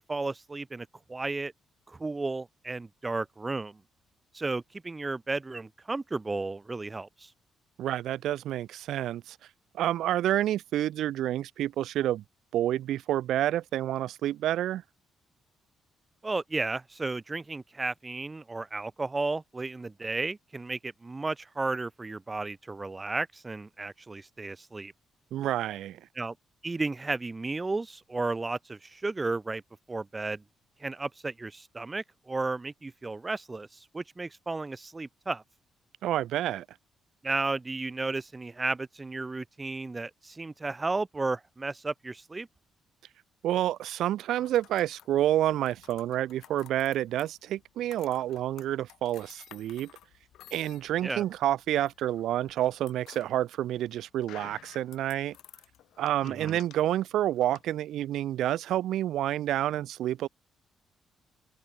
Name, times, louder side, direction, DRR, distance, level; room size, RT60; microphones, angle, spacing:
voice 1, 0.0-1.5 1.9-3.8 4.3-7.3 16.2-24.9 26.2-26.3 26.6-29.6 29.9-30.4 30.8-35.4 37.2-42.5 51.0-51.2 56.2-56.6, right 3 dB, 20° right, 2.9 m, -33 dB
voice 2, 7.8-9.4 9.7-12.2 12.5-14.8 25.3-26.0 36.0-36.6 43.4-49.9 50.5-55.4 56.0-60.3, right 12 dB, 80° right, 1.2 m, -29 dB
sound 1, 44.4-57.7, left 13 dB, 80° left, 3.4 m, -54 dB
cardioid pair, 90°, 0 cm